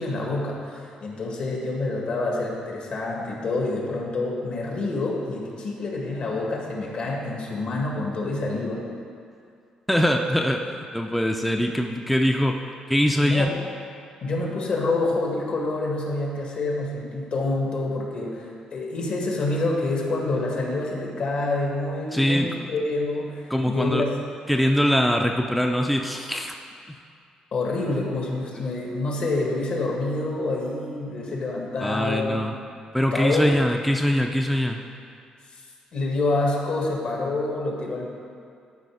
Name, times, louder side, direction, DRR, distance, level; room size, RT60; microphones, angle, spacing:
voice 1, 0.0-8.8 13.2-13.5 14.2-24.1 27.5-32.4 33.1-33.6 35.9-38.1, left 2 dB, 60° left, -1 dB, 1.8 m, -27 dB
voice 2, 9.9-13.5 22.1-22.7 23.5-24.0 24.5-26.5 26.9-27.0 31.8-32.5 32.9-34.8, equal, ahead, 2 dB, 0.4 m, -23 dB
12.0 x 4.9 x 4.9 m, 2.4 s
cardioid pair, 110°, 2 cm